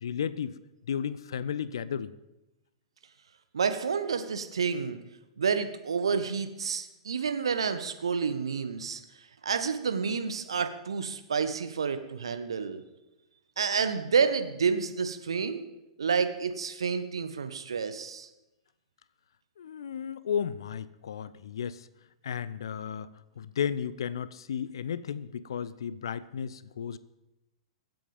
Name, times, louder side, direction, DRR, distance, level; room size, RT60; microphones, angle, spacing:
voice 1, 0.0-0.6 0.8-2.1 19.6-21.9 22.2-27.0, left 8 dB, 60° left, 17 dB, 0.7 m, -34 dB
voice 2, 3.5-5.0 5.4-9.0 9.4-12.8 13.6-15.6 16.0-18.3, right 6 dB, 65° right, 9 dB, 1.3 m, -29 dB
23.5 x 7.9 x 5.2 m, 0.95 s
figure-of-eight pair, 100°, 3 cm